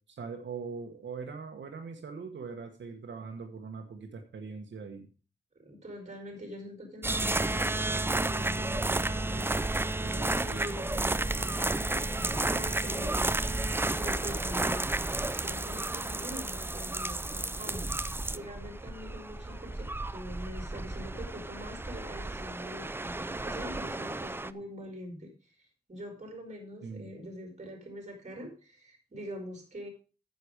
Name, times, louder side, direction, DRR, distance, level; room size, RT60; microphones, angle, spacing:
voice 1, 0.0-5.1 12.9-13.1 13.4-13.7 26.8-27.1, right 5 dB, 90° right, 3 dB, 1.4 m, -42 dB
voice 2, 5.5-14.9 15.3-29.9, equal, 40° right, 2 dB, 4.4 m, -44 dB
sound 1, 7.0-24.5, right 2 dB, 10° right, 0.4 m, -32 dB
9.5 x 8.0 x 5.1 m, 0.36 s
wide cardioid pair, 105°, 19 cm